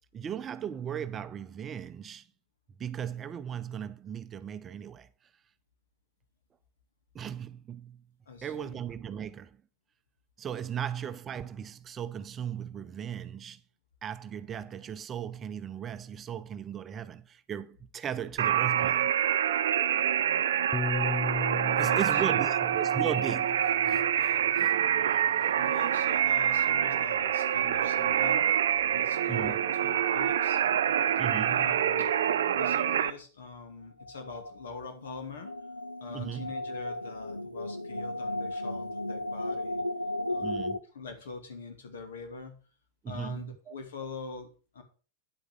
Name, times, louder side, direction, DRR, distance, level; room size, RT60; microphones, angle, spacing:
voice 1, 0.1-2.2 2.8-5.1 7.1-8.0 8.4-9.5 10.4-13.6 14.0-19.1 21.7-24.8 25.1-25.6 29.3-29.6 31.2-31.8 36.1-36.5 40.4-40.8 43.0-43.7, right 9 dB, 25° right, 0.7 m, -37 dB
voice 2, 8.3-8.8 21.7-22.6 25.6-28.5 28.9-30.6 31.1-32.2 32.5-35.5 36.0-39.8 40.3-40.6 40.9-42.6 43.1-44.8, left 4 dB, 65° left, 2.5 m, -43 dB
sound 1, 18.4-33.1, right 9 dB, 60° right, 0.7 m, -26 dB
Piano, 20.7-25.2, left 4 dB, 15° left, 0.4 m, -37 dB
sound 2, 34.0-40.8, left 1 dB, 85° left, 0.7 m, -35 dB
10.0 x 8.2 x 5.0 m
figure-of-eight pair, 90°, 0 cm